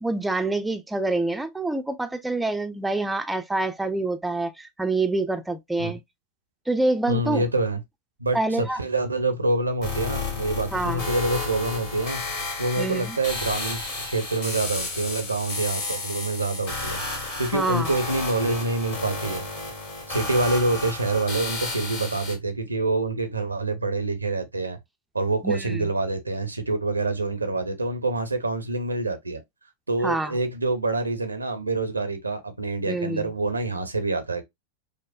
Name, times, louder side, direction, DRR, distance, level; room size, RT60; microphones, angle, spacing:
voice 1, 0.0-6.0 6.7-7.4 8.3-8.8 10.7-11.0 12.8-13.2 17.5-17.9 25.4-25.9 30.0-30.3 32.9-33.3, right 2 dB, 5° right, 0.4 m, -26 dB
voice 2, 7.1-7.8 8.2-12.2 12.6-17.0 17.4-19.5 20.1-24.8 25.1-29.4 29.9-34.4, right 2 dB, 80° right, 0.6 m, -26 dB
sound 1, 9.8-22.3, left 3 dB, 45° left, 1.9 m, -32 dB
5.2 x 2.0 x 2.3 m
figure-of-eight pair, 90°, 0 cm